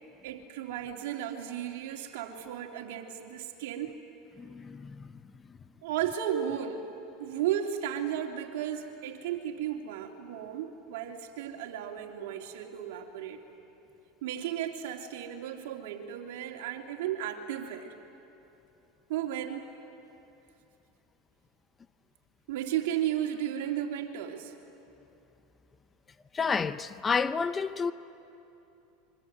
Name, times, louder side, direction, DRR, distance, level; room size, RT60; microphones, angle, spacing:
voice 1, 0.2-3.9 5.8-6.8 7.2-13.4 14.2-17.9 19.1-19.7 22.5-24.5, right 10 dB, 75° right, 2.9 m, -34 dB
voice 2, 4.4-5.1 26.3-27.9, left 5 dB, 20° left, 0.8 m, -30 dB
26.0 x 23.5 x 9.5 m
supercardioid pair, 105°, 0 cm